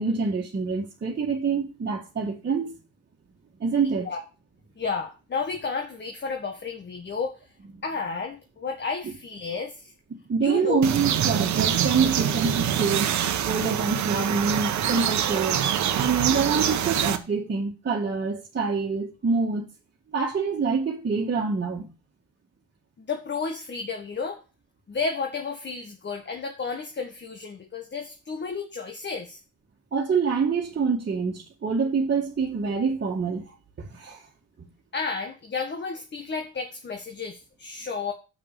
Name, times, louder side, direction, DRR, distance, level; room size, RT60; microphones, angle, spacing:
voice 1, 0.0-2.7 3.6-4.1 10.1-13.1 13.5-15.7 16.0-19.7 20.1-21.9 29.9-34.2, right 5 dB, 35° right, 1.8 m, -26 dB
voice 2, 4.8-7.5 7.8-9.9 10.4-11.0 16.3-16.4 23.0-24.4 24.9-29.4 34.9-38.1, left 5 dB, 35° left, 1.5 m, -32 dB
sound 1, 10.8-17.2, right 10 dB, 70° right, 1.1 m, -25 dB
6.7 x 6.0 x 6.6 m
cardioid pair, 90°, 30 cm